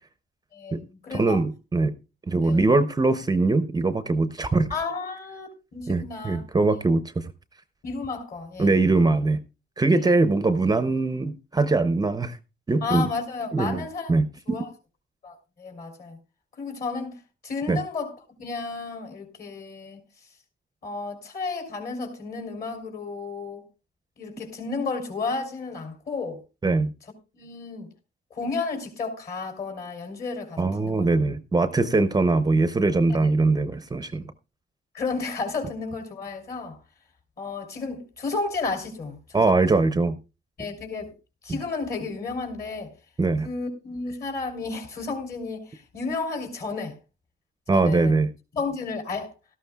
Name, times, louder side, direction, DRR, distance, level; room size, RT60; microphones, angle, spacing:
voice 1, 0.5-1.4 2.4-2.6 4.7-6.4 7.8-8.8 12.8-14.1 14.5-14.7 15.2-16.2 16.6-17.2 17.4-20.0 20.8-23.6 24.2-26.4 27.3-27.9 28.3-31.1 33.1-33.3 34.9-36.8 37.4-39.6 40.6-41.1 41.4-42.9 43.4-46.9 47.7-48.2 48.5-49.3, left 4 dB, 50° left, 3.4 m, -32 dB
voice 2, 1.1-1.9 2.3-4.7 5.9-7.0 8.6-9.4 9.8-12.4 12.7-13.1 13.5-13.8 14.1-14.6 17.7-17.8 26.6-26.9 30.6-34.2 39.3-40.2 41.5-41.6 43.2-43.5 47.7-48.3, right 3 dB, 20° right, 0.6 m, -22 dB
17.0 x 13.5 x 2.3 m
cardioid pair, 145°, 20 cm